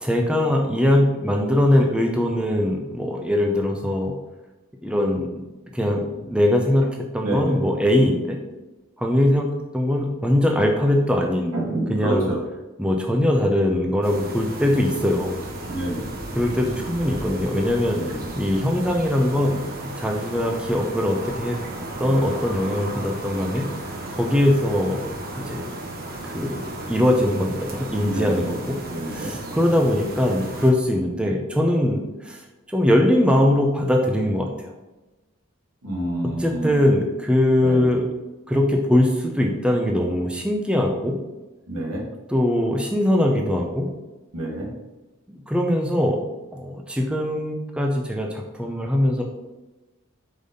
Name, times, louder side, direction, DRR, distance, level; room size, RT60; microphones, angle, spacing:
voice 1, 0.0-4.1 4.8-5.4 5.7-8.4 9.0-9.5 9.7-11.5 11.9-12.3 12.8-15.3 16.4-21.6 22.0-25.0 25.4-25.7 26.2-28.8 29.0-34.7 36.4-38.0 38.5-41.2 42.3-43.9 45.3-46.2 46.5-49.3, left 1 dB, 5° right, 1 dB, 0.6 m, -21 dB
voice 2, 7.2-7.6 11.5-12.4 15.7-16.1 17.9-18.2 28.0-28.5 28.9-29.3 35.8-36.8 37.6-37.9 41.7-42.0 44.3-44.7, right 1 dB, 80° right, -2 dB, 1.8 m, -28 dB
sound 1, 14.0-30.7, right 1 dB, 45° right, 1.0 m, -34 dB
5.2 x 4.1 x 5.2 m, 1.1 s
head